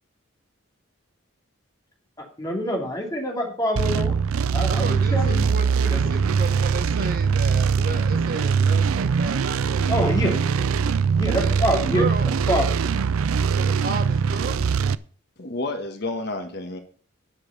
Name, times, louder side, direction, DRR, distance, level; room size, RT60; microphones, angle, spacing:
voice 1, 2.4-4.2 4.5-5.5 5.9-6.0 9.9-10.4 11.2-12.1 12.5-12.7, equal, 15° left, 0 dB, 2.7 m, -25 dB
sound 1, 3.8-15.0, right 6 dB, 85° right, 0.4 m, -22 dB
voice 2, 4.7-9.9 10.6-11.0 11.3-12.6 13.5-14.6, right 2 dB, 45° right, 8 dB, 1.2 m, -34 dB
voice 3, 15.4-16.8, left 2 dB, 50° left, 5 dB, 1.5 m, -30 dB
11.0 x 6.7 x 6.7 m, 0.43 s
head